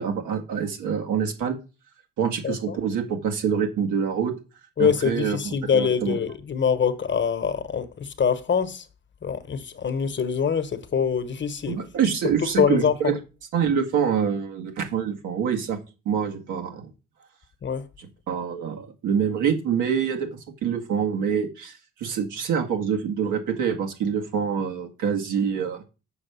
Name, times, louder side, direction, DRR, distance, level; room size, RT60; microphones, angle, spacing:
voice 1, 0.0-1.6 2.2-4.3 4.8-6.2 11.7-13.2 13.5-15.8 16.1-16.9 18.0-20.3 20.6-25.8, right 7 dB, 85° right, 2.1 m, -26 dB
voice 2, 2.4-2.8 4.8-8.8 9.2-11.8 12.6-13.1 17.6-17.9, left 7 dB, 40° left, 1.1 m, -24 dB
7.0 x 5.0 x 6.9 m
cardioid pair, 90°, 30 cm